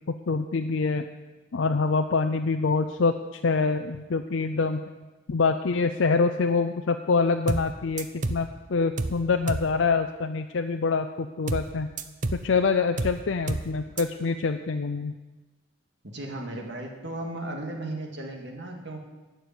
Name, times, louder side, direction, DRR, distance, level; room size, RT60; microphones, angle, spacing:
voice 1, 0.3-1.1 1.5-4.8 5.3-11.9 12.3-15.1, left 4 dB, 65° left, 6 dB, 0.5 m, -25 dB
sound 1, 7.5-7.7 8.0-8.5 9.0-9.2 9.5-9.7 11.5-11.7 12.0-12.5 13.0-13.2 13.5-13.7 14.0-14.1, right 2 dB, 40° right, 0.7 m, -29 dB
voice 2, 16.0-19.0, right 1 dB, 60° right, 2 dB, 2.1 m, -35 dB
11.5 x 6.8 x 9.3 m, 1.2 s
head